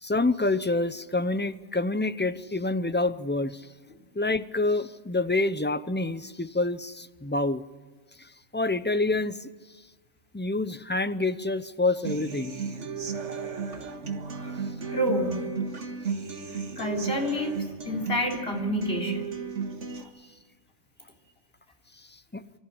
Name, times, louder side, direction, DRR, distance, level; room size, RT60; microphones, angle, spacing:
voice 1, 0.0-3.7 4.1-7.6 8.2-9.5 10.3-12.6 22.0-22.5, left 2 dB, 15° left, 13 dB, 0.4 m, -27 dB
Human voice / Acoustic guitar, 12.0-20.0, right 5 dB, 75° right, 1.9 m, -34 dB
voice 2, 14.9-15.4 16.8-17.6 17.8-19.3 19.9-20.0, left 1 dB, 55° left, 0 dB, 3.8 m, -28 dB
24.5 x 14.5 x 9.8 m, 1.4 s
omnidirectional pair, 1.2 m